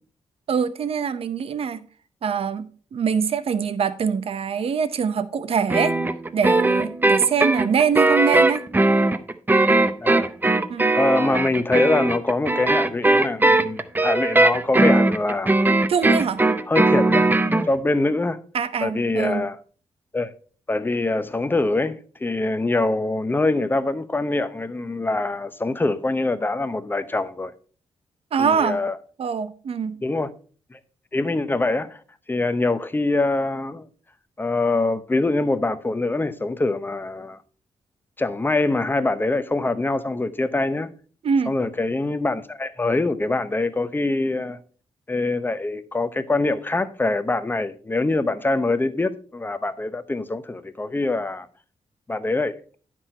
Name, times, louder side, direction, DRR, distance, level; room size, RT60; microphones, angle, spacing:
voice 1, 0.5-1.8 2.2-5.9 6.3-8.6 10.7-10.9 15.9-16.4 18.5-19.4 28.3-28.8 29.2-30.0 41.2-41.6, right 6 dB, 60° right, 0.7 m, -23 dB
sound 1, 5.7-17.7, right 2 dB, 15° right, 0.6 m, -19 dB
voice 2, 10.0-10.3 10.9-15.6 16.7-17.3 17.7-18.4 18.8-19.6 20.1-20.3 20.7-27.5 28.4-28.9 30.0-30.3 30.7-30.8 31.1-32.0 32.3-33.9 34.4-37.4 38.2-40.9 41.5-44.6 45.1-51.5 52.1-52.6, left 2 dB, 20° left, 0.8 m, -24 dB
9.8 x 6.1 x 4.4 m
cardioid pair, 105°, 11 cm